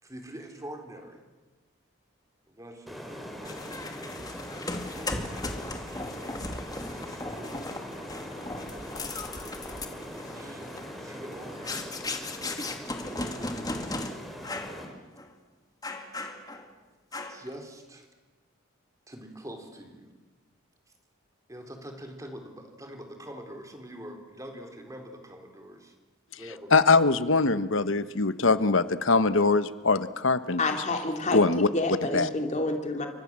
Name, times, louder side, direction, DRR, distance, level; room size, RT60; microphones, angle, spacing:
voice 1, 0.0-1.2 2.5-3.9 4.9-5.9 6.7-8.3 10.1-11.9 12.8-14.1 17.3-18.1 19.1-20.1 21.5-25.9 26.4-26.7, equal, 15° right, 4 dB, 3.8 m, -45 dB
sound 1, 2.9-14.8, equal, ahead, 4.3 m, -41 dB
sound 2, 3.4-14.1 14.4-14.8 15.2-15.3 15.8-16.7 17.1-17.5, left 2 dB, 20° left, 2.4 m, -37 dB
voice 2, 26.7-30.6 31.3-31.7 32.1-32.3, left 3 dB, 65° left, 13 dB, 1.1 m, -22 dB
voice 3, 30.6-31.4 31.7-33.1, left 2 dB, 35° left, 4 dB, 2.9 m, -28 dB
29.0 x 25.0 x 7.5 m, 1.2 s
head